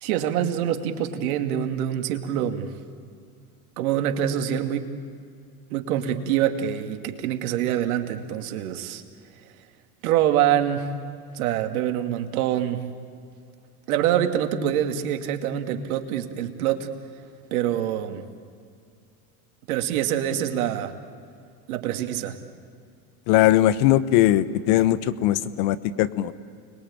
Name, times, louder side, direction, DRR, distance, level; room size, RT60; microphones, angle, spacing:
voice 1, 0.0-2.7 3.8-4.8 5.7-9.0 10.0-10.9 11.3-12.8 13.9-16.9 17.5-18.2 19.7-20.9 21.7-22.4, right 10 dB, 70° right, 6 dB, 2.6 m, -25 dB
voice 2, 23.3-26.3, left 13 dB, 55° left, 15 dB, 1.3 m, -20 dB
30.0 x 22.0 x 8.8 m, 2.3 s
hypercardioid pair, 100°, 44 cm